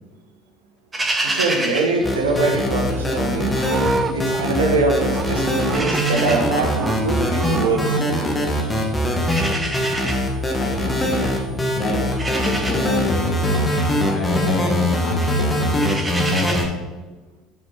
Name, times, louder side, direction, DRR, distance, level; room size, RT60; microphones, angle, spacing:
sound 1, 0.9-3.2 3.5-4.8 5.1-16.6, right 2 dB, 20° right, 2.1 m, -30 dB
voice 1, 1.2-3.5 4.1-7.9, right 3 dB, 80° right, 2 dB, 1.3 m, -23 dB
sound 2, 2.0-16.7, left 1 dB, 15° left, 1.9 m, -21 dB
Livestock farm animals working animals, 3.0-6.5 6.7-8.0 11.8-13.0, right 4 dB, 35° right, 0.4 m, -31 dB
voice 2, 10.6-16.0, left 2 dB, 40° left, 1 dB, 2.4 m, -29 dB
7.6 x 6.7 x 4.4 m, 1.2 s
figure-of-eight pair, 65°, 0 cm